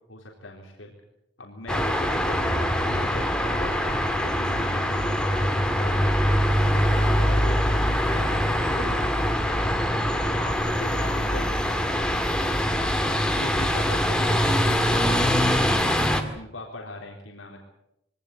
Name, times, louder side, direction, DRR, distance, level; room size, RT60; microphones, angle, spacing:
voice 1, 0.1-0.9 1.4-9.8 10.3-12.7 13.1-16.0 16.3-17.6, left 2 dB, 90° left, 0 dB, 3.8 m, -40 dB
sound 1, 1.7-16.2, equal, 5° left, 2.0 m, -23 dB
23.0 x 18.0 x 8.4 m, 0.82 s
head